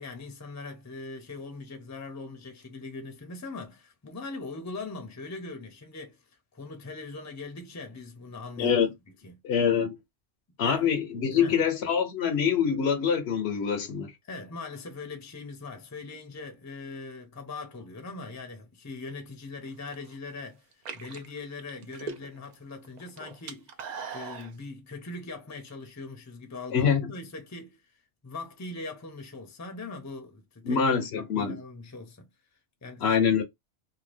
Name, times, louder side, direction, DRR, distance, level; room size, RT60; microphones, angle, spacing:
voice 1, 0.0-6.2 6.5-8.8 9.2-9.4 10.6-10.9 11.3-11.6 14.2-20.7 20.9-23.8 24.1-27.8 28.2-32.3 32.8-33.2, left 3 dB, 20° left, 0.5 m, -41 dB
voice 2, 8.6-8.9 9.4-10.0 10.6-14.1 26.7-27.1 30.7-31.6 33.0-33.4, left 7 dB, 70° left, 0.9 m, -25 dB
sound 1, 19.7-20.1 20.7-22.5 22.8-24.5, right 5 dB, 55° right, 0.5 m, -40 dB
2.8 x 2.2 x 3.2 m
omnidirectional pair, 1.2 m